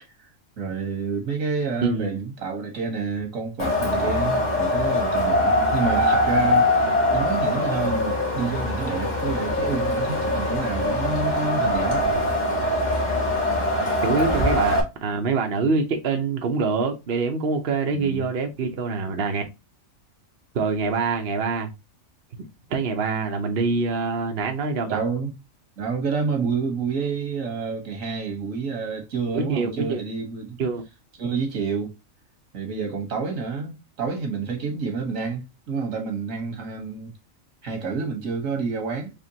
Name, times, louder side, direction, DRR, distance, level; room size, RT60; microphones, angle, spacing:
voice 1, 0.6-12.1 14.1-14.5 17.9-18.3 24.8-25.3 25.8-30.6 31.2-31.9 32.5-37.1 37.6-39.1, right 5 dB, 80° right, 1.7 m, -29 dB
voice 2, 1.8-2.2 14.0-19.4 20.5-21.7 22.7-25.0 29.3-30.0 30.6-30.8, right 4 dB, 50° right, 0.9 m, -25 dB
Wind, 3.6-14.8, left 1 dB, 35° left, 1.6 m, -23 dB
5.1 x 3.0 x 2.8 m
omnidirectional pair, 1.4 m